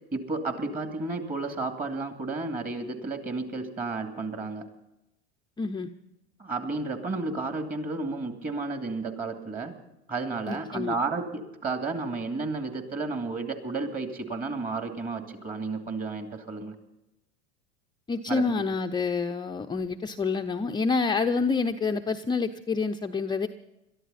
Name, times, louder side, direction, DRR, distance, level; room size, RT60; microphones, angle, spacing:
voice 1, 0.1-4.6 6.4-9.7 10.1-16.7 18.3-18.4, right 3 dB, 25° right, 5 dB, 2.6 m, -32 dB
voice 2, 5.6-5.9 10.5-10.9 18.1-23.5, left 4 dB, 15° left, 4 dB, 0.6 m, -27 dB
22.0 x 13.0 x 4.2 m, 0.92 s
hypercardioid pair, 90°, 32 cm